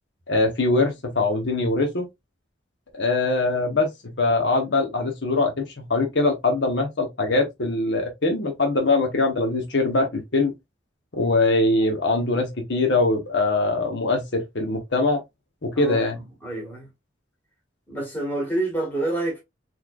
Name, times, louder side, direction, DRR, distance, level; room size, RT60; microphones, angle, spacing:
voice 1, 0.3-2.1 2.9-10.5 11.1-15.2 15.6-16.2, left 2 dB, 65° left, 0.9 m, -22 dB
voice 2, 15.7-16.9 17.9-19.4, right 2 dB, 10° left, 1.8 m, -28 dB
4.0 x 3.2 x 2.3 m
head